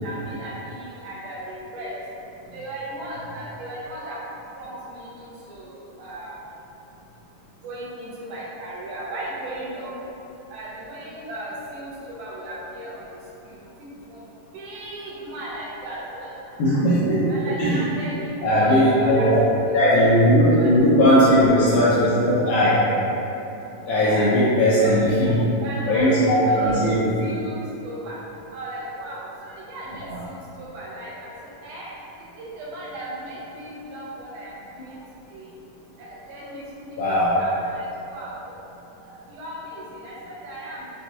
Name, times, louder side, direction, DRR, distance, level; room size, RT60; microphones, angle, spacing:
voice 1, 0.0-2.0 2.5-4.2 4.5-6.4 7.6-9.9 10.5-13.1 14.1-14.2 14.5-16.9 17.3-19.3 19.7-19.8 20.5-20.7 23.9-24.3 24.7-25.3 25.6-26.9 27.2-28.2 28.5-31.3 31.6-31.9 32.2-35.0 35.3-35.5 36.0-38.5 39.0-40.9, right 1 dB, 80° right, -6 dB, 1.9 m, -36 dB
voice 2, 16.6-17.8 18.4-19.5 19.7-22.8 23.8-25.4 25.9-27.1 30.1-30.2 37.0-37.3, equal, 80° left, -10 dB, 1.8 m, -18 dB
6.0 x 2.3 x 2.7 m, 3.0 s
omnidirectional pair, 4.1 m